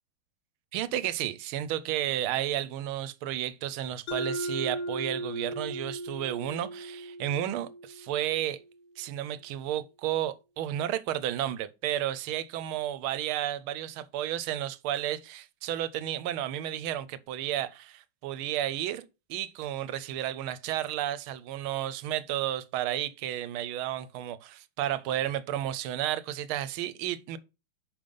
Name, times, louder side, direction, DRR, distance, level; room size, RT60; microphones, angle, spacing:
voice 1, 0.7-8.6 9.0-27.4, right 12 dB, 85° right, 1.5 m, -32 dB
Mallet percussion, 4.1-8.6, right 1 dB, 80° left, 1.7 m, -37 dB
5.3 x 5.2 x 5.3 m
omnidirectional pair, 2.3 m